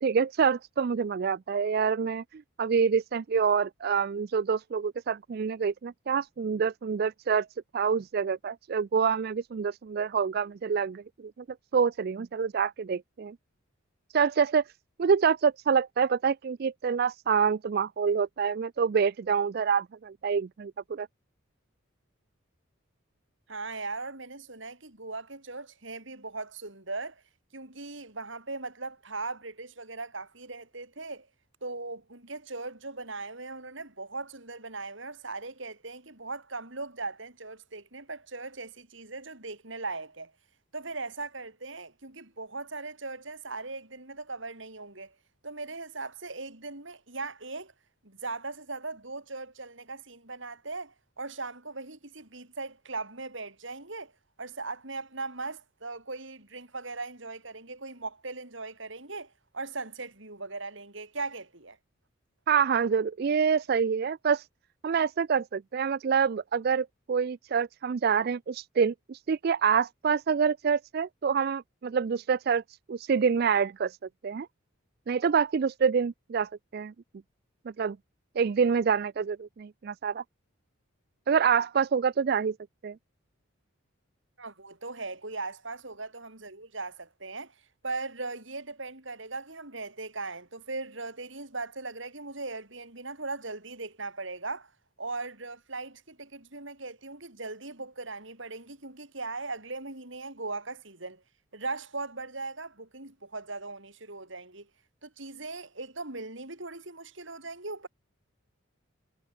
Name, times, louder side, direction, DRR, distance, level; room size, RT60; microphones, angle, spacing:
voice 1, 0.0-7.5 7.7-11.3 11.7-13.4 14.1-14.6 15.0-21.1 62.5-64.5 64.8-74.0 74.2-74.5 75.1-76.9 77.8-78.0 78.4-80.2 81.3-82.6 82.8-83.0, right 6 dB, 50° right, 0.3 m, -26 dB
voice 2, 23.5-27.2 27.5-31.3 31.6-40.3 40.7-45.1 45.4-47.7 48.0-54.1 54.4-61.8 84.4-87.6 87.8-94.7 95.0-101.2 101.5-104.7 105.0-107.9, right 3 dB, 65° right, 4.7 m, -39 dB
head